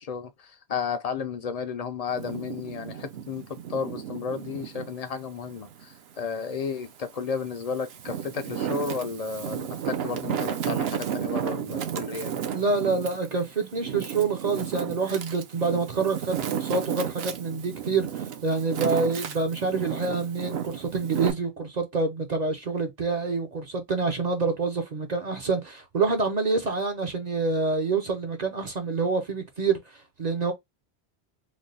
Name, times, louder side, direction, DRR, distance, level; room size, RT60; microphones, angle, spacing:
voice 1, 0.0-12.3, left 5 dB, 50° left, 0.5 m, -33 dB
Wind, 2.1-4.9 5.4-6.7 7.3-21.3, right 9 dB, 75° right, 0.9 m, -33 dB
voice 2, 12.5-30.5, right 4 dB, 45° right, 0.7 m, -27 dB
3.3 x 2.2 x 3.9 m
omnidirectional pair, 1.1 m